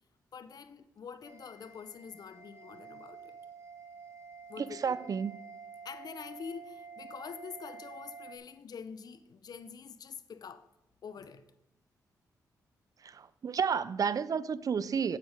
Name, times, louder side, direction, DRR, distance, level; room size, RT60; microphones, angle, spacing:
voice 1, 0.3-3.4 4.5-5.1 5.8-10.7 11.0-11.4, left 6 dB, 65° left, 0.8 m, -46 dB
sound 1, 1.2-8.4, right 5 dB, 35° right, 2.1 m, -49 dB
voice 2, 4.6-5.4 13.0-15.2, right 6 dB, 55° right, 0.5 m, -31 dB
8.2 x 8.2 x 5.1 m
supercardioid pair, 55°, 7 cm